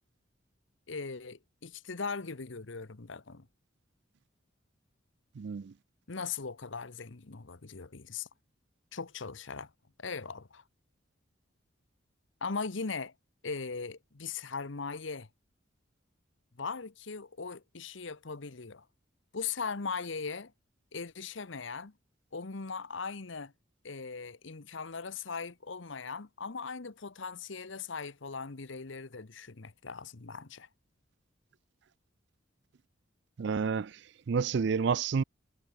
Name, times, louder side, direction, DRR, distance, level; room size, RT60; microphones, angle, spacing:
voice 1, 0.9-3.5 6.1-8.3 8.9-9.7 10.0-10.6 12.4-13.1 13.4-15.3 16.6-18.8 19.3-20.5 20.9-21.9 22.3-23.5 23.8-30.7, left 5 dB, 70° left, 1.0 m, -39 dB
voice 2, 5.4-5.7 33.4-33.9 34.3-35.2, right 5 dB, 55° right, 0.4 m, -29 dB
head